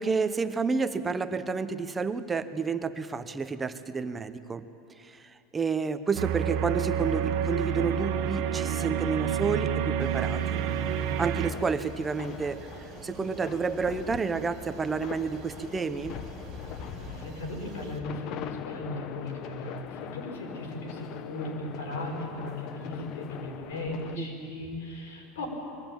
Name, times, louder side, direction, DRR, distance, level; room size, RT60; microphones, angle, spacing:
voice 1, 0.0-4.7 5.0-10.6 11.2-12.7 13.0-16.2 24.2-24.5, right 5 dB, 15° right, 11 dB, 0.7 m, -30 dB
sound 1, 6.2-11.5, right 8 dB, 60° right, 1.2 m, -29 dB
sound 2, 10.0-18.0, right 7 dB, 40° right, 1.9 m, -46 dB
sound 3, 11.0-24.2, left 10 dB, 45° left, 0.7 m, -42 dB
voice 2, 17.0-25.5, left 2 dB, 90° left, 0 dB, 5.4 m, -37 dB
21.5 x 16.0 x 8.9 m, 2.9 s
supercardioid pair, 135°, 0 cm